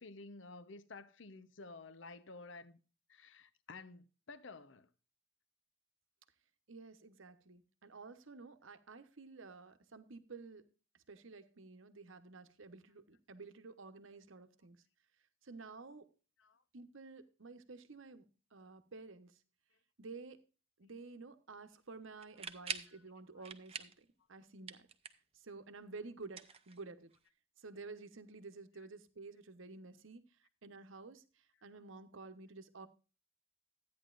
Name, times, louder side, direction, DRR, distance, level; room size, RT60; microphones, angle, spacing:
voice 1, 0.0-2.8 3.1-4.9 16.4-16.6 22.9-23.0 23.3-23.5, left 3 dB, 60° left, 0.8 m, -52 dB
voice 2, 6.7-10.7 11.1-14.8 15.4-16.1 16.7-19.4 20.0-20.4 20.8-24.9 25.3-27.1 27.6-30.2 30.6-31.2 31.6-32.9, right 3 dB, 70° right, 1.0 m, -52 dB
sound 1, 22.2-23.0 23.4-24.0 24.3-25.3 26.2-27.2, right 7 dB, 30° right, 0.7 m, -45 dB
13.0 x 9.5 x 2.5 m
head